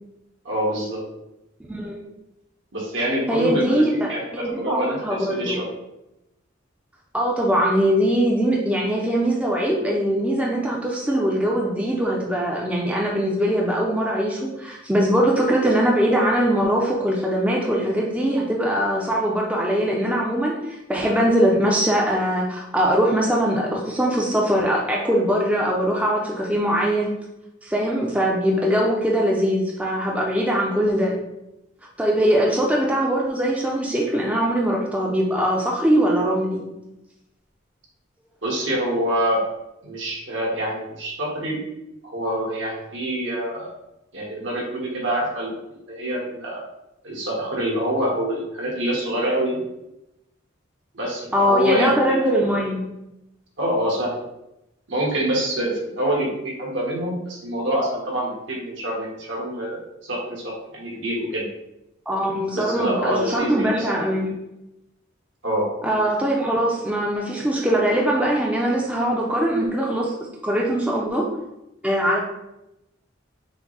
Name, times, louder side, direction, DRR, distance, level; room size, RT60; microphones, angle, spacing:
voice 1, 0.4-1.0 2.7-5.7 38.4-39.4 39.8-41.6 42.0-43.7 44.1-46.6 47.0-49.6 50.9-52.3 53.6-54.2 54.9-61.4 62.5-64.0 65.4-65.7, right 1 dB, 70° right, -3 dB, 1.4 m, -26 dB
voice 2, 1.7-2.0 3.3-3.9 4.3-5.6 7.1-27.1 27.6-31.1 32.0-36.7 51.3-52.9 62.1-64.3 65.8-71.3 71.8-72.2, equal, 5° right, -2 dB, 0.5 m, -21 dB
5.9 x 2.1 x 4.0 m, 0.89 s
head